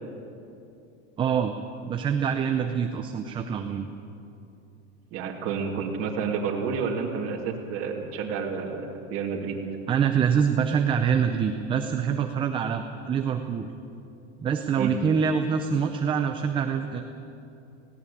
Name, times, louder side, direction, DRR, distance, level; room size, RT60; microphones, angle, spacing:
voice 1, 1.2-1.5 1.9-3.9 9.9-13.7 14.4-17.0, right 7 dB, 15° right, 6 dB, 0.5 m, -25 dB
voice 2, 5.1-9.6 14.8-14.9, right 5 dB, 40° right, -2 dB, 2.6 m, -30 dB
18.0 x 17.0 x 8.6 m, 2.7 s
supercardioid pair, 160°, 36 cm